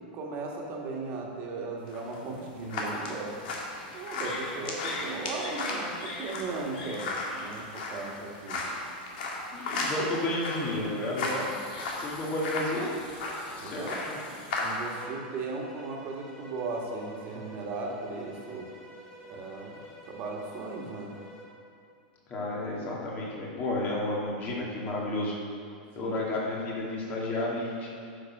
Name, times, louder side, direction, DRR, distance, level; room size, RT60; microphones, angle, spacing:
voice 1, 0.1-3.3 3.9-8.6 11.2-11.6 13.6-14.0 14.3-18.7 19.3-21.1 26.0-26.2, right 3 dB, 35° right, -1 dB, 1.8 m, -37 dB
sound 1, 1.9-15.0, left 2 dB, 65° left, 2.1 m, -35 dB
voice 2, 9.5-11.3 12.0-12.9 13.6-14.2 22.3-25.4 26.0-27.9, left 2 dB, 30° left, -4 dB, 2.2 m, -32 dB
Bowed string instrument, 14.8-21.6, equal, 10° left, 2.2 m, -49 dB
9.9 x 6.4 x 5.9 m, 2.5 s
supercardioid pair, 155°, 5 cm